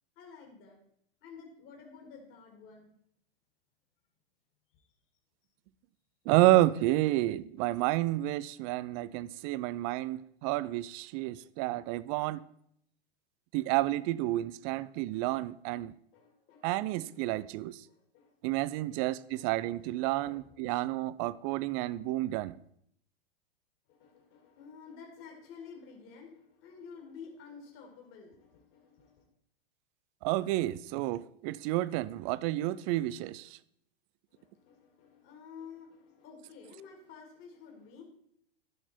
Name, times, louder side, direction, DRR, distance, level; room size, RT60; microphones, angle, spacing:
voice 1, 0.2-0.8 1.2-2.9 4.7-4.8 16.1-16.7 17.9-18.6 18.9-20.8 23.9-29.2 34.3-38.0, left 6 dB, 40° left, 2.7 m, -52 dB
voice 2, 6.3-12.4 13.5-15.9 16.6-17.8 18.4-22.6 30.2-33.6, right 16 dB, 35° right, 0.4 m, -30 dB
14.0 x 5.9 x 4.5 m
hypercardioid pair, 105°, 31 cm